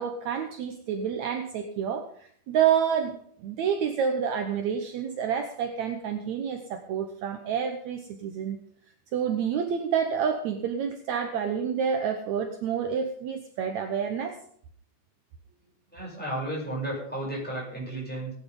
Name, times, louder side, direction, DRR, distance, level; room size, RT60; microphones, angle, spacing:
voice 1, 0.0-8.6 9.1-14.4, right 7 dB, 70° right, 6 dB, 2.2 m, -28 dB
voice 2, 15.9-18.3, right 1 dB, 5° left, -4 dB, 7.6 m, -33 dB
18.5 x 10.0 x 3.9 m, 0.62 s
omnidirectional pair, 3.6 m